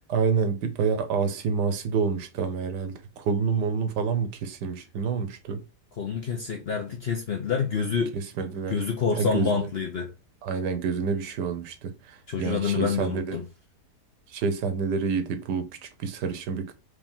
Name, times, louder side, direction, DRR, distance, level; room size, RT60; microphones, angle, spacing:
voice 1, 0.1-5.6 8.1-8.8 9.2-9.7 10.4-13.4 14.3-16.7, right 5 dB, 80° right, 1.4 m, -28 dB
voice 2, 6.0-8.1 8.7-10.1 12.3-13.4, left 6 dB, 55° left, 0.7 m, -27 dB
4.8 x 2.9 x 3.5 m
omnidirectional pair, 1.8 m